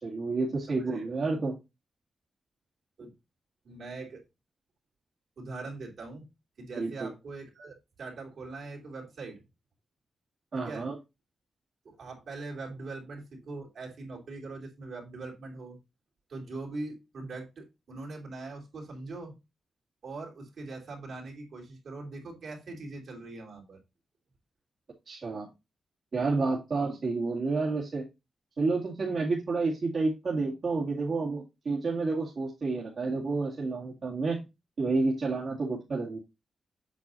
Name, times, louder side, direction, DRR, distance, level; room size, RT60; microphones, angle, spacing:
voice 1, 0.0-1.6 6.8-7.1 10.5-10.9 25.1-25.5 26.1-28.1 28.6-34.4 34.8-36.2, right 3 dB, 60° right, -5 dB, 2.1 m, -30 dB
voice 2, 0.7-1.0 3.0-3.1 3.6-4.2 5.4-6.3 6.6-9.4 10.6-10.9 11.8-15.8 16.3-19.4 20.0-23.8, right 3 dB, 75° right, -1 dB, 3.4 m, -42 dB
8.3 x 6.3 x 2.7 m, 0.24 s
cardioid pair, 65°, 0 cm